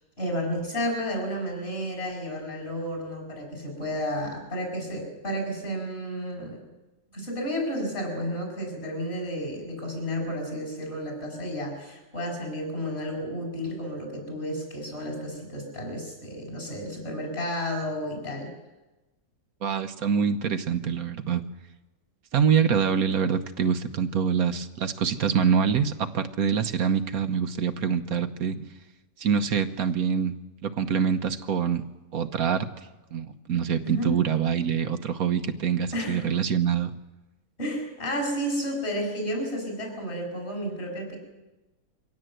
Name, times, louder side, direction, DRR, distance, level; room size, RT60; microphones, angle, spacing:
voice 1, 0.2-6.7 7.1-18.5 33.8-34.1 35.9-36.2 37.6-41.2, equal, 45° left, 2 dB, 7.2 m, -32 dB
voice 2, 19.6-21.4 22.3-28.7 29.2-30.3 30.6-31.8 32.1-32.7 33.1-36.9, right 7 dB, 75° right, 9 dB, 1.5 m, -25 dB
24.0 x 17.0 x 7.9 m, 1.1 s
omnidirectional pair, 1.6 m